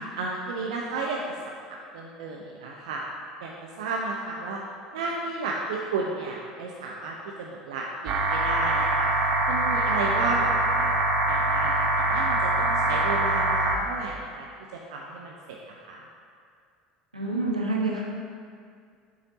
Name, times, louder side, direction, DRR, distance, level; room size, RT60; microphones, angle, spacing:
voice 1, 0.2-1.2 1.7-3.0 3.4-4.6 4.9-9.1 9.5-11.0 11.3-14.5 14.9-16.0, right 3 dB, 65° right, -1 dB, 0.5 m, -33 dB
sound 1, 8.1-13.8, right 2 dB, 40° right, 0.8 m, -24 dB
voice 2, 17.1-18.0, right 2 dB, 85° right, -3 dB, 0.9 m, -27 dB
7.3 x 4.1 x 4.0 m, 2.2 s
figure-of-eight pair, 65°, 4 cm